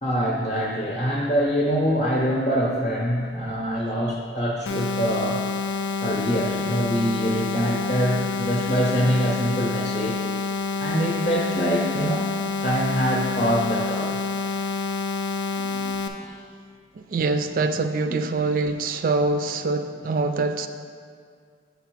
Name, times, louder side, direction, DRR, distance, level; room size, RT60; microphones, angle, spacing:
voice 1, 0.0-5.4 6.0-10.2 10.8-12.3 12.6-14.2 15.5-16.4, equal, 40° left, -2 dB, 0.7 m, -24 dB
sound 1, 4.7-16.1, left 4 dB, 90° left, 0.5 m, -28 dB
voice 2, 17.1-20.7, right 3 dB, 50° right, 8 dB, 0.3 m, -24 dB
7.0 x 4.1 x 4.5 m, 2.1 s
head